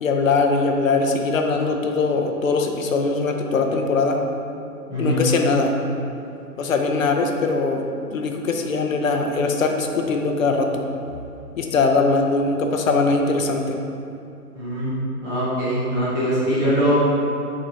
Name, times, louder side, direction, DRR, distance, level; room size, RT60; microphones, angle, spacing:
voice 1, 0.0-4.2 5.0-5.7 6.6-7.8 8.1-10.9 11.6-13.8, left 3 dB, 55° left, 3 dB, 0.7 m, -21 dB
voice 2, 4.9-5.2 14.5-14.9 15.2-16.9, equal, 10° right, -11 dB, 0.6 m, -22 dB
6.3 x 3.8 x 4.2 m, 2.6 s
figure-of-eight pair, 135°, 47 cm